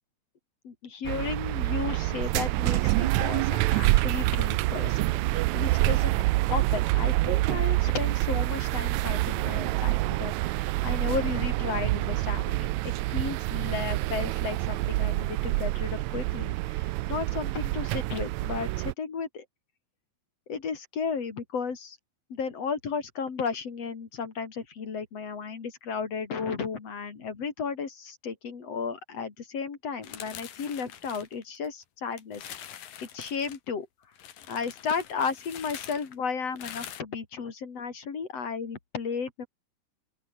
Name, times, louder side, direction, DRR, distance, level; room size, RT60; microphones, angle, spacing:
voice 1, 0.6-5.0 5.3-6.1 6.5-19.4 20.5-22.0 22.3-32.4 33.1-33.9 34.5-39.5, left 5 dB, 50° left, 3.9 m, -34 dB
Leipzig Germany ride with old rattling tram, 1.0-18.9, right 19 dB, 85° right, 1.6 m, -27 dB
sound 1, 30.0-31.8 32.2-33.6 34.2-37.0, left 10 dB, 90° left, 3.6 m, -44 dB
open air
omnidirectional pair, 3.8 m